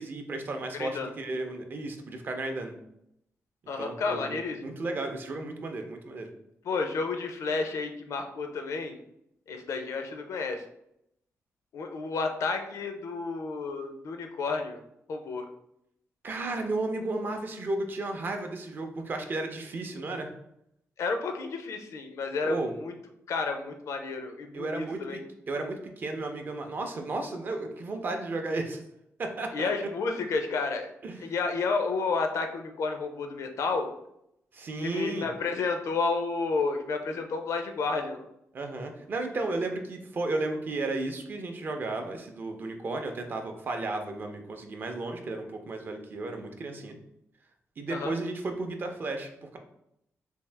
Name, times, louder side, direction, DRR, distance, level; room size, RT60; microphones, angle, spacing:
voice 1, 0.0-2.7 3.8-6.3 16.2-20.3 22.4-22.7 24.5-25.2 25.5-28.8 29.2-29.7 31.0-31.3 34.5-35.3 38.5-47.0 47.8-49.6, right 2 dB, 40° right, 5 dB, 0.5 m, -34 dB
voice 2, 3.7-4.6 6.6-9.0 9.5-10.6 11.7-14.8 15.1-15.5 21.0-22.9 23.3-25.2 29.5-30.9 31.2-33.9 34.8-38.3 47.9-48.2, left 4 dB, 70° left, 5 dB, 0.5 m, -31 dB
3.5 x 2.7 x 3.3 m, 0.78 s
wide cardioid pair, 155°, 5 cm